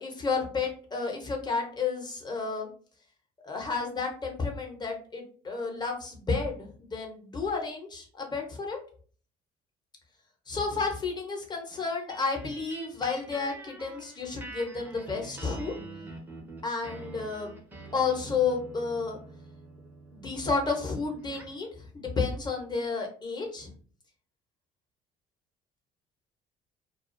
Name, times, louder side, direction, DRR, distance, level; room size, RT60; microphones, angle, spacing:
voice 1, 0.0-2.7 3.4-8.8 10.5-15.7 16.6-17.5 17.9-19.2 20.1-23.7, left 4 dB, 25° left, 1 dB, 0.8 m, -31 dB
sound 1, 12.1-21.6, right 2 dB, 10° right, 0.6 m, -46 dB
2.4 x 2.4 x 2.5 m, 0.44 s
cardioid pair, 110°, 17 cm